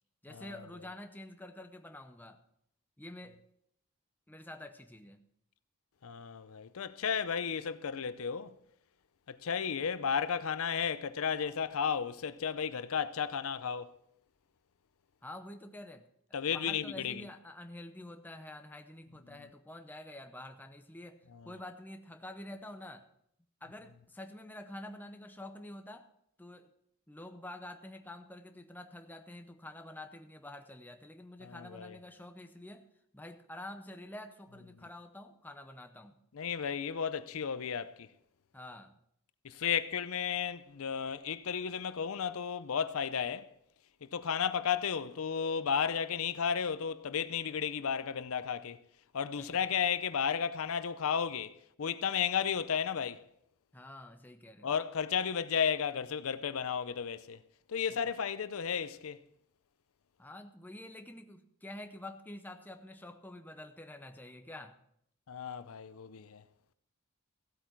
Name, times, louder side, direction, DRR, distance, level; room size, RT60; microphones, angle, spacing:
voice 1, 0.2-2.4 3.0-3.4 4.3-5.3 15.2-16.1 16.5-23.1 23.6-26.1 26.4-26.7 27.1-32.9 33.1-36.2 38.5-39.0 49.4-49.8 53.7-54.7 57.9-58.1 60.2-64.8, left 1 dB, 10° left, 0.6 m, -48 dB
voice 2, 6.0-8.5 9.3-13.9 16.3-17.2 21.3-21.5 31.4-32.0 36.3-38.1 39.4-43.5 44.0-48.8 49.1-51.5 51.8-53.2 54.6-57.4 57.7-59.2 65.3-66.4, left 7 dB, 70° left, 0.5 m, -33 dB
15.0 x 8.4 x 4.5 m
head